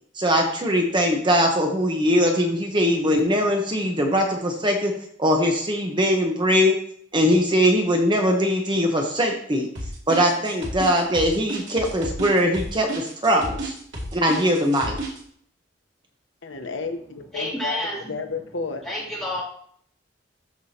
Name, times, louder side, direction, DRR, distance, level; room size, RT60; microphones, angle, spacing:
voice 1, 0.1-4.9 5.2-6.8 7.1-9.7 10.1-13.7 14.1-14.9, equal, 25° right, 2 dB, 0.9 m, -21 dB
sound 1, 9.8-15.2, right 2 dB, 85° right, 2.5 m, -32 dB
voice 2, 16.4-17.0 17.3-18.8, left 4 dB, 85° left, 6 dB, 1.0 m, -31 dB
voice 3, 17.3-18.0 18.8-19.4, left 1 dB, ahead, -7 dB, 2.9 m, -29 dB
13.5 x 4.8 x 2.8 m, 0.63 s
head